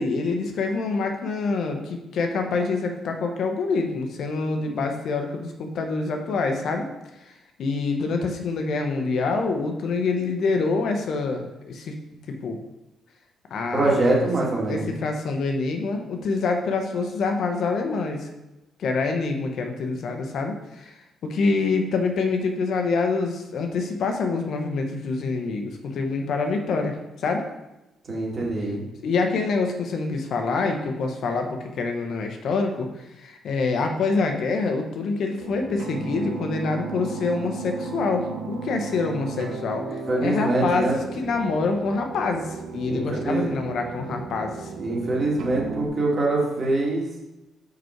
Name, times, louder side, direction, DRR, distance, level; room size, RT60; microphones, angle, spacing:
voice 1, 0.0-6.8 7.2-7.3 7.6-11.9 12.3-12.6 13.5-14.0 14.6-18.3 18.8-27.5 29.0-40.9 41.2-44.7, left 4 dB, 70° left, 4 dB, 1.0 m, -26 dB
voice 2, 13.7-14.9 28.0-28.8 40.1-41.0 42.9-43.4 44.8-47.1, right 2 dB, 40° right, -3 dB, 2.4 m, -24 dB
sound 1, 35.4-45.9, right 5 dB, 70° right, 1.1 m, -35 dB
5.3 x 5.3 x 4.6 m, 0.97 s
cardioid pair, 90°, 0 cm